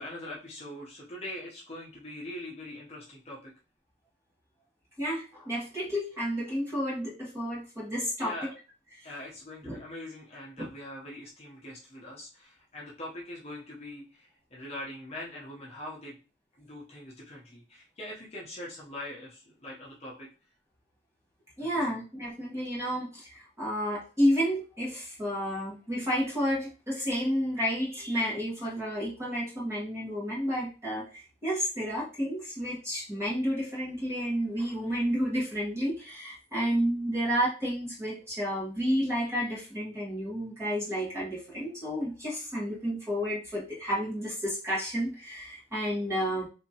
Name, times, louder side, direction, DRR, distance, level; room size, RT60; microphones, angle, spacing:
voice 1, 0.0-3.5 5.8-5.9 8.2-8.5 9.0-16.1 16.6-20.3 21.6-22.0, left 1 dB, 30° left, -5 dB, 0.9 m, -42 dB
voice 2, 5.0-8.5 8.9-9.1 9.6-9.8 10.6-10.7 21.6-46.5, equal, 15° right, -6 dB, 1.3 m, -31 dB
3.5 x 2.9 x 2.9 m, 0.34 s
head